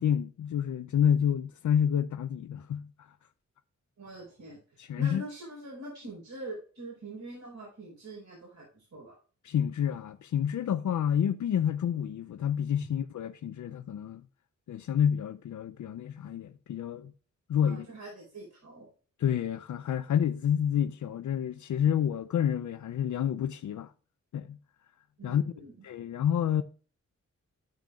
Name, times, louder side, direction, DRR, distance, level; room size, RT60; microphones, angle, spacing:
voice 1, 0.0-3.1 4.8-5.2 9.4-14.2 14.7-17.1 17.5-17.9 19.2-23.9 24.3-24.6 25.2-25.4 25.8-26.6, left 9 dB, 75° left, 0.5 m, -29 dB
voice 2, 4.0-9.1 17.6-18.9 25.2-25.7, right 1 dB, 65° right, 4.7 m, -44 dB
9.1 x 9.1 x 2.3 m
wide cardioid pair, 90°, 30 cm